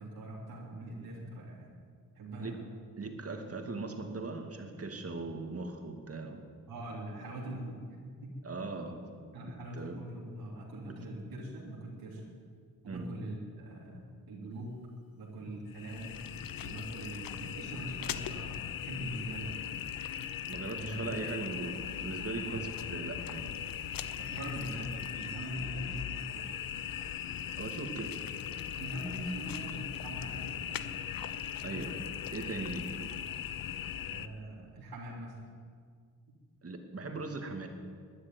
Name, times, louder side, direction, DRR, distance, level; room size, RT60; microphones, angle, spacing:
voice 1, 0.0-1.7 2.1-2.6 6.7-8.0 9.3-12.3 12.8-14.7 15.1-16.1 16.6-19.5 20.7-21.1 22.4-22.6 24.2-26.5 28.7-31.0 34.0-35.3, right 1 dB, 80° right, -3 dB, 3.4 m, -42 dB
voice 2, 3.0-6.4 8.4-9.0 9.4-10.0 10.9-11.0 12.9-13.1 20.5-23.6 27.6-28.1 31.6-33.1 36.6-37.7, right 3 dB, 40° right, 4 dB, 2.4 m, -39 dB
sound 1, 15.7-34.3, left 9 dB, 65° left, 0.8 m, -39 dB
13.0 x 9.6 x 9.5 m, 2.1 s
cardioid pair, 60°, 36 cm